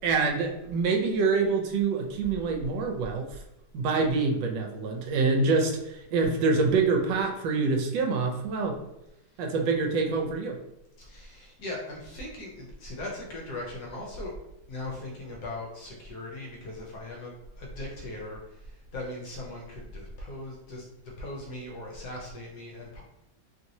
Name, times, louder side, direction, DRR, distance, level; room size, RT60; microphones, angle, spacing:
voice 1, 0.0-3.3 3.7-8.8 9.4-10.6, right 4 dB, 75° right, 2 dB, 1.2 m, -26 dB
voice 2, 11.0-14.4 14.7-23.0, left 1 dB, 70° left, -2 dB, 1.1 m, -39 dB
3.1 x 2.8 x 2.6 m, 0.88 s
omnidirectional pair, 2.1 m